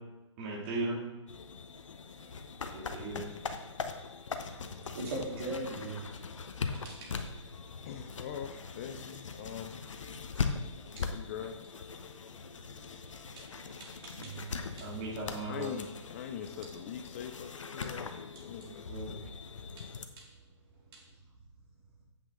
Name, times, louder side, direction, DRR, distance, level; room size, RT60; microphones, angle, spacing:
voice 1, 0.4-1.0 2.7-3.2 14.8-15.7 18.7-19.1, right 2 dB, 30° right, -3 dB, 2.7 m, -37 dB
sound 1, 1.3-20.1, left 5 dB, 75° left, 1.0 m, -41 dB
voice 2, 4.5-7.5 10.9-11.1 12.9-15.0 19.6-20.3 20.9-21.0, right 2 dB, 45° right, -4 dB, 3.4 m, -43 dB
voice 3, 7.9-9.8 11.1-11.6 15.5-18.8, left 8 dB, 25° left, 7 dB, 0.5 m, -42 dB
9.7 x 8.0 x 3.8 m, 1.0 s
hypercardioid pair, 155°, 16 cm